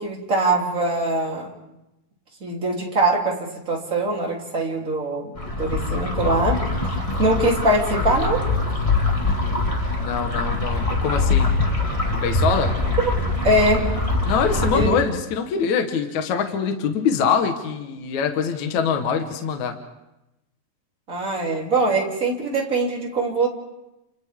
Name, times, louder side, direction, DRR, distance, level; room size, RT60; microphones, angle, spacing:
voice 1, 0.0-1.5 2.4-6.6 7.2-8.4 13.4-13.9 14.7-15.0 21.1-23.5, right 2 dB, 20° right, -2 dB, 3.3 m, -22 dB
sound 1, 5.3-14.9, left 2 dB, 30° left, 0.6 m, -23 dB
voice 2, 10.0-11.5 12.1-12.8 14.3-19.8, left 6 dB, 60° left, 5 dB, 2.2 m, -24 dB
30.0 x 29.5 x 3.7 m, 0.93 s
omnidirectional pair, 4.8 m